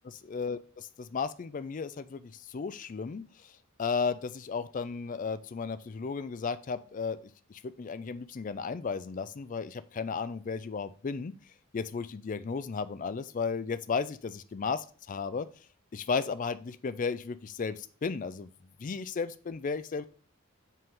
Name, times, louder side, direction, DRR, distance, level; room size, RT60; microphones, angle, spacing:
voice 1, 0.0-0.6 1.0-3.2 3.8-7.2 7.5-11.3 11.7-15.5 15.9-18.5 18.8-20.1, left 5 dB, 40° left, 14 dB, 0.4 m, -34 dB
5.5 x 3.7 x 5.3 m, 0.42 s
head